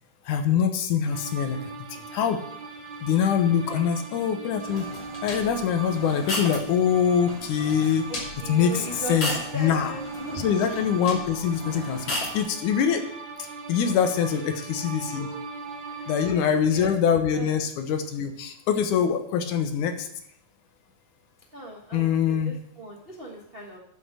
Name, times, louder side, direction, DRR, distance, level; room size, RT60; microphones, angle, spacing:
voice 1, 0.3-2.4 3.0-4.9 5.2-8.1 8.5-10.0 10.4-13.1 13.4-15.3 16.1-20.1 21.9-22.6, left 8 dB, 75° left, 7 dB, 2.4 m, -24 dB
sound 1, 1.1-16.3, right 4 dB, 85° right, 1.0 m, -39 dB
sound 2, 4.6-12.5, left 1 dB, 45° left, 3.7 m, -36 dB
voice 2, 8.4-10.4 15.1-15.4 15.9-16.9 17.3-17.6 21.5-22.1 22.4-23.8, right 1 dB, 45° right, -2 dB, 0.7 m, -38 dB
8.5 x 7.5 x 6.2 m, 0.72 s
omnidirectional pair, 3.7 m